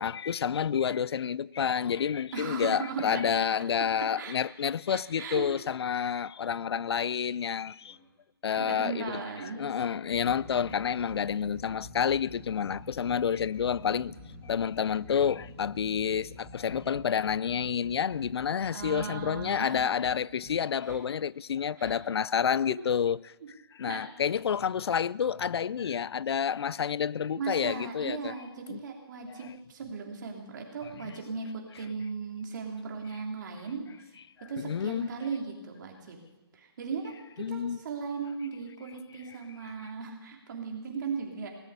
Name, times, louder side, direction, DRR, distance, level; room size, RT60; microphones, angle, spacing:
voice 1, 0.0-8.0 8.4-14.1 14.4-23.3 23.7-28.3 28.7-28.8 29.3-29.4 31.0-31.2 34.6-35.1 37.4-37.8, left 7 dB, 85° left, 0.4 m, -29 dB
voice 2, 2.3-3.2 4.2-4.3 4.9-5.5 8.6-9.6 18.7-19.9 20.8-21.0 21.8-22.0 22.7-22.8 23.9-24.0 27.4-34.1 34.5-36.2 36.5-41.5, right 5 dB, 50° right, 3.1 m, -37 dB
sound 1, 7.8-8.1 8.9-9.1 9.7-21.0 21.8-22.0, left 1 dB, 15° left, 3.1 m, -48 dB
18.0 x 8.1 x 8.1 m
hypercardioid pair, 160°, 13 cm